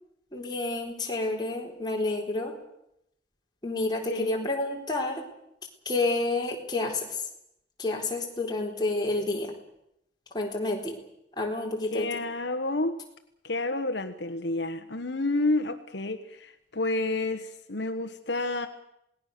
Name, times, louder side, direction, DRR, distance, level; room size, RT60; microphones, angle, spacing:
voice 1, 0.3-2.5 3.6-5.3 5.9-7.0 7.8-9.5 10.3-11.0 11.4-12.1, left 2 dB, 20° left, -1 dB, 4.2 m, -29 dB
voice 2, 4.1-4.5 11.9-13.0 13.4-18.7, left 2 dB, 65° left, 8 dB, 1.3 m, -30 dB
27.5 x 19.5 x 6.8 m, 0.79 s
head